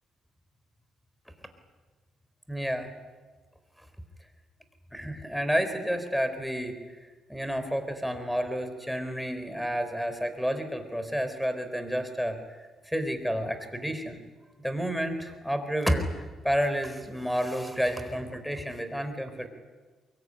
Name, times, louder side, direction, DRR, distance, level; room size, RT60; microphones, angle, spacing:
voice 1, 2.5-2.9 4.9-14.2 14.6-19.5, equal, ahead, 9 dB, 4.2 m, -30 dB
23.5 x 22.5 x 10.0 m, 1.4 s
cardioid pair, 90°, 0 cm